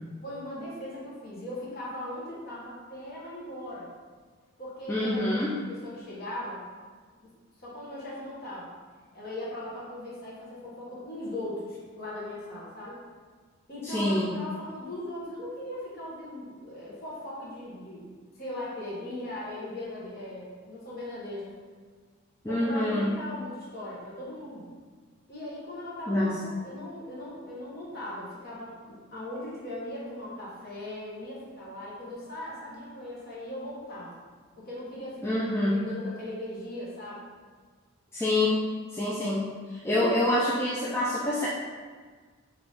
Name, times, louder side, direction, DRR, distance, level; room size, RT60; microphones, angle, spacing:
voice 1, 0.2-3.9 4.6-6.6 7.6-8.7 9.1-13.0 13.7-21.6 22.5-24.7 25.3-34.1 34.6-37.2 39.9-40.2, left 1 dB, 45° left, -6 dB, 1.2 m, -39 dB
voice 2, 4.9-5.5 13.8-14.3 22.4-23.1 26.1-26.4 35.2-35.8 38.1-38.5 38.9-41.5, left 1 dB, 10° left, -7 dB, 0.4 m, -26 dB
4.8 x 2.6 x 3.4 m, 1.5 s
head